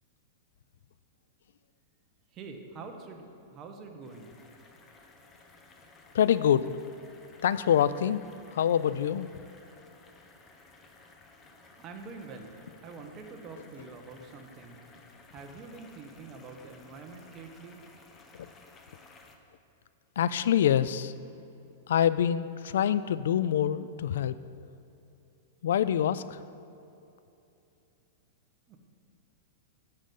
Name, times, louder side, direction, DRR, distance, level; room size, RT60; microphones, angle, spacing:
voice 1, 2.3-4.3 11.8-14.8 15.3-17.8 28.7-28.8, right 4 dB, 25° right, 3 dB, 1.2 m, -45 dB
sound 1, 4.0-19.4, left 3 dB, 20° left, 1.0 m, -56 dB
voice 2, 6.1-6.8 7.4-8.2 8.5-9.3 18.4-18.5 20.2-21.1 21.9-24.3 25.6-26.4, left 9 dB, 80° left, 15 dB, 0.3 m, -25 dB
10.0 x 8.0 x 5.4 m, 2.8 s
supercardioid pair, 145°, 0 cm